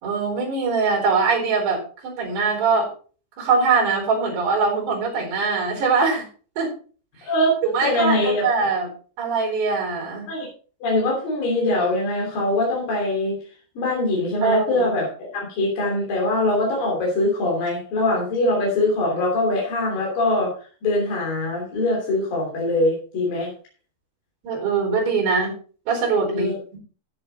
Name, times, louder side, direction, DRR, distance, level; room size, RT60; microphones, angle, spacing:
voice 1, 0.0-2.9 3.4-6.3 6.6-6.7 7.6-8.9 9.2-10.3 14.4-14.9 24.4-25.5 25.9-26.8, right 4 dB, 60° right, 0 dB, 6.4 m, -22 dB
voice 2, 7.2-7.6 7.8-8.5 10.3-10.5 10.8-13.4 13.8-15.1 15.3-20.5 20.8-23.5 26.3-26.6, left 2 dB, 50° left, -3 dB, 4.5 m, -22 dB
13.5 x 7.6 x 4.0 m, 0.40 s
omnidirectional pair, 5.6 m